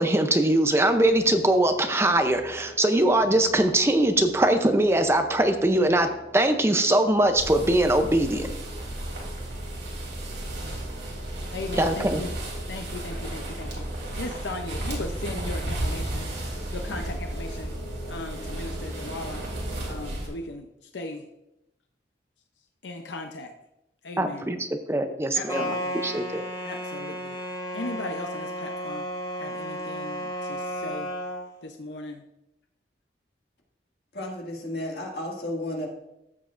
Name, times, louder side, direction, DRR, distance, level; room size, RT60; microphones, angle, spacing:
voice 1, 0.0-8.5 11.8-12.2 24.2-25.8 26.0-26.4, right 1 dB, 15° right, 7 dB, 0.5 m, -22 dB
sound 1, 0.7-20.1, right 1 dB, 50° left, 3.4 m, -44 dB
sound 2, 7.4-20.3, right 1 dB, 80° right, 3.0 m, -34 dB
voice 2, 11.5-12.4 12.7-13.9 14.2-16.3 16.7-17.7 18.1-19.4 19.9-21.2 22.8-23.5 24.0-24.5 25.3-26.0 26.6-27.4 27.7-29.1 29.4-31.1 31.6-32.2, left 2 dB, 85° left, 4 dB, 0.7 m, -37 dB
sound 3, 25.5-31.5, equal, 20° left, 1.1 m, -33 dB
voice 3, 34.1-35.9, left 1 dB, 65° left, -1 dB, 2.0 m, -32 dB
14.0 x 7.2 x 2.5 m, 0.88 s
head